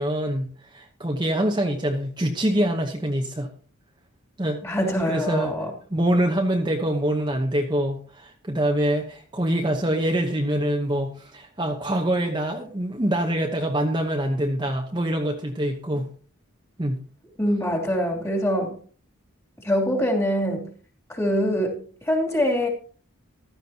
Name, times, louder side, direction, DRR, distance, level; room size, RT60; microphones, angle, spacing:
voice 1, 0.0-3.5 4.4-4.8 5.1-5.5 5.9-16.1 16.8-17.0, right 1 dB, 20° right, 2 dB, 1.0 m, -25 dB
voice 2, 4.6-5.7 17.4-18.8 19.6-20.7 21.1-22.7, equal, 15° left, -1 dB, 2.9 m, -24 dB
15.0 x 12.5 x 2.9 m, 0.43 s
head